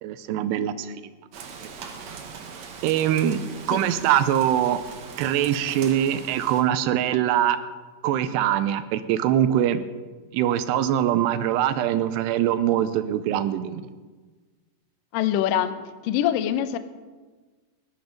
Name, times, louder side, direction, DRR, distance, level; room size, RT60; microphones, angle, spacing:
voice 1, 0.0-0.9 2.8-4.8 5.2-7.6 8.0-9.8 10.3-13.8, right 11 dB, 90° right, 12 dB, 2.9 m, -23 dB
Rain, 1.3-6.6, right 5 dB, 60° right, 2.0 m, -40 dB
voice 2, 15.1-15.7 16.0-16.8, left 11 dB, 75° left, 11 dB, 2.1 m, -23 dB
17.5 x 11.5 x 5.2 m, 1.3 s
omnidirectional pair, 4.7 m